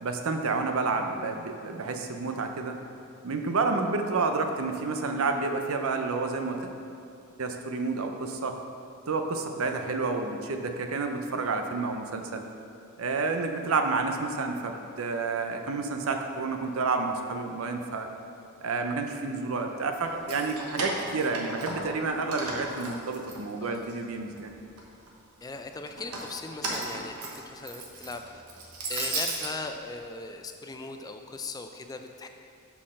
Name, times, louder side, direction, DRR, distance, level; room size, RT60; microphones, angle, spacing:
voice 1, 0.0-2.8 3.2-6.6 7.4-8.6 9.1-12.4 13.0-18.1 18.6-24.5, right 3 dB, 70° right, 5 dB, 0.6 m, -30 dB
Keys jangling, 20.1-22.0 22.3-23.9 24.3-25.1 25.9-29.5, right 2 dB, 90° right, 1.1 m, -35 dB
voice 2, 25.4-28.4 28.9-32.3, left 3 dB, 15° left, 6 dB, 0.3 m, -39 dB
5.6 x 4.3 x 6.3 m, 2.6 s
head